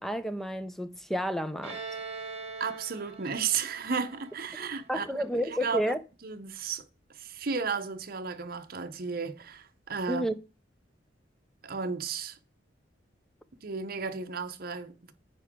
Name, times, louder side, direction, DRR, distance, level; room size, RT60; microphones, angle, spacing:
voice 1, 0.0-1.8 4.9-6.0 10.1-10.3, equal, ahead, 0.6 m, -31 dB
Bowed string instrument, 1.6-5.2, right 4 dB, 35° right, 2.2 m, -42 dB
voice 2, 2.6-5.1 5.4-5.9 6.2-6.8 7.1-10.2 11.6-12.4 13.6-15.1, right 5 dB, 55° right, 0.8 m, -34 dB
9.6 x 4.5 x 3.7 m
head